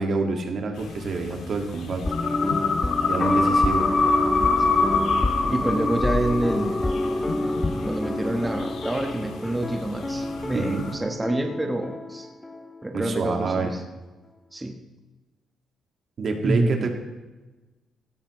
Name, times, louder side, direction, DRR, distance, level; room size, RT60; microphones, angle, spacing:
voice 1, 0.0-2.0 3.1-3.9 10.5-10.9 12.9-13.7 16.2-16.9, right 3 dB, 55° right, 3 dB, 1.9 m, -27 dB
sound 1, 0.7-11.0, left 5 dB, 75° left, 2.0 m, -32 dB
sound 2, 2.0-13.5 13.7-13.8, left 1 dB, 15° left, 0.5 m, -29 dB
sound 3, 3.2-7.9 8.3-8.4, left 3 dB, 40° left, 3.0 m, -24 dB
voice 2, 5.5-6.8 7.9-12.3 12.8-13.8 14.5-14.8 16.4-16.9, right 1 dB, 15° right, 3 dB, 1.3 m, -27 dB
16.5 x 12.5 x 3.1 m, 1.2 s
cardioid pair, 90°, 0 cm